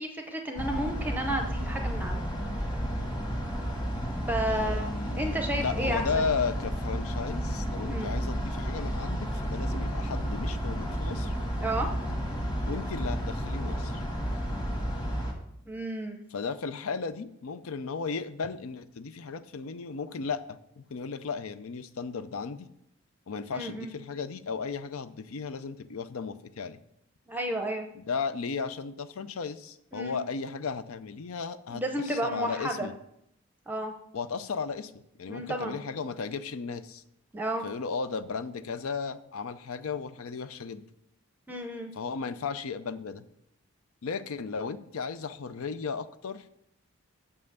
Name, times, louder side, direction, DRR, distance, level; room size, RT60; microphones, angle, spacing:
voice 1, 0.0-2.2 4.3-4.9 5.2-6.3 7.9-8.1 11.6-11.9 15.7-16.2 23.5-23.9 27.3-27.9 29.9-30.2 31.7-32.9 33.7-33.9 35.3-35.8 37.3-37.6 41.5-41.9, right 1 dB, 10° right, 4 dB, 0.6 m, -32 dB
sound 1, 0.6-15.3, equal, 20° left, 1.4 m, -32 dB
voice 2, 4.5-11.3 12.6-14.0 16.3-22.7 23.3-26.8 27.9-32.9 34.1-34.9 35.2-37.0 37.6-40.8 42.0-43.2 44.0-46.4, left 5 dB, 80° left, 13 dB, 0.5 m, -35 dB
6.8 x 5.5 x 6.5 m, 0.76 s
head